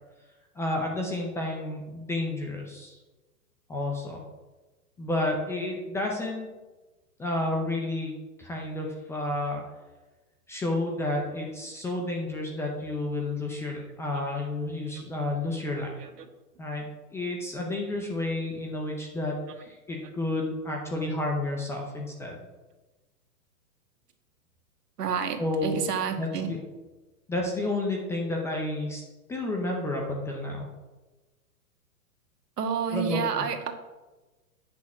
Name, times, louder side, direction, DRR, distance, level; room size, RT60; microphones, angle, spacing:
voice 1, 0.6-3.0 3.7-4.2 5.0-6.5 7.2-9.6 10.5-15.9 16.6-22.5 25.4-25.8 26.2-26.6 27.3-29.0 29.3-30.7 32.9-33.5, left 2 dB, 5° left, -1 dB, 0.5 m, -31 dB
voice 2, 25.0-26.5 32.6-33.7, right 7 dB, 75° right, 6 dB, 1.6 m, -30 dB
8.7 x 6.3 x 5.9 m, 1.2 s
hypercardioid pair, 135°, 47 cm